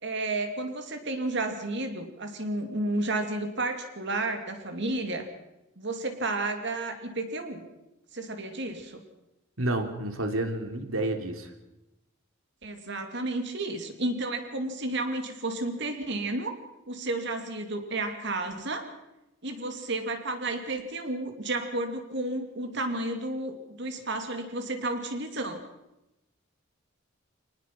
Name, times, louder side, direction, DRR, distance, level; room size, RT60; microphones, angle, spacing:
voice 1, 0.0-5.3 5.8-7.7 8.1-9.0 12.6-16.5 16.9-18.9 19.4-25.6, right 2 dB, 60° right, 6 dB, 2.7 m, -32 dB
voice 2, 9.6-11.5, right 1 dB, 90° right, 6 dB, 2.9 m, -30 dB
25.0 x 19.5 x 6.0 m, 0.93 s
head